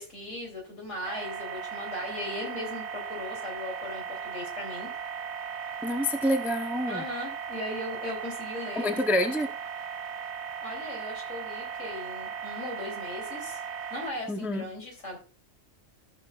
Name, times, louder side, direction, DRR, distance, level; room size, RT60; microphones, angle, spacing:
voice 1, 0.0-4.9 6.9-8.9 10.6-13.6 13.9-15.2, left 2 dB, 75° left, 0 dB, 3.5 m, -38 dB
sound 1, 1.1-14.1, right 7 dB, 65° right, 1.1 m, -37 dB
voice 2, 5.8-7.0 8.8-9.5 14.3-14.6, left 1 dB, ahead, 5 dB, 0.6 m, -27 dB
14.5 x 6.5 x 2.4 m, 0.35 s
omnidirectional pair, 1.3 m